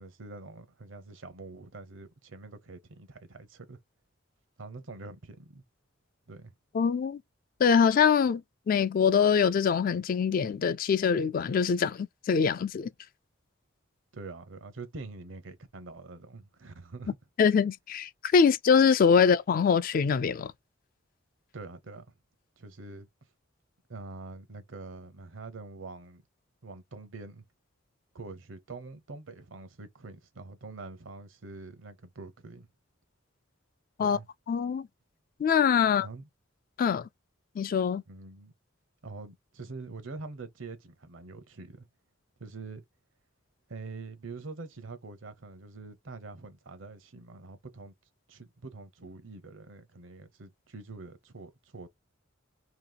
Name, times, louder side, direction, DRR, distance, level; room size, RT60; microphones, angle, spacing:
voice 1, 0.0-3.8 4.6-5.6 6.3-6.5 14.1-17.2 21.5-22.1 22.6-23.1 23.9-26.2 26.6-27.4 28.1-32.7 34.0-34.3 36.0-36.3 38.1-38.5 39.0-41.9 42.4-42.8 43.7-47.9 48.3-51.9, right 3 dB, 75° right, 0.8 m, -45 dB
voice 2, 6.7-7.2 7.6-12.9 17.4-20.5 34.0-34.2 34.5-34.9 35.4-36.1 36.8-37.1 37.6-38.0, left 6 dB, 45° left, 0.3 m, -24 dB
2.9 x 2.8 x 3.9 m
head